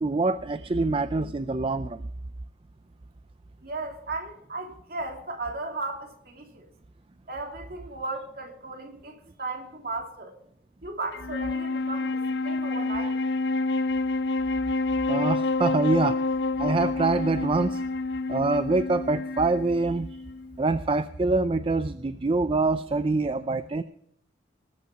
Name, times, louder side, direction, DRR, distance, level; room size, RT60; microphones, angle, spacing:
voice 1, 0.0-2.0 13.0-13.1 15.1-16.2 16.6-17.8 18.3-20.1 20.6-23.8, right 3 dB, 30° right, 0.4 m, -25 dB
voice 2, 3.6-6.6 7.3-10.3 10.8-13.2, right 3 dB, 55° right, 2.9 m, -36 dB
Wind instrument woodwind instrument, 11.1-20.6, left 3 dB, 65° left, 0.5 m, -28 dB
20.0 x 8.3 x 4.8 m
head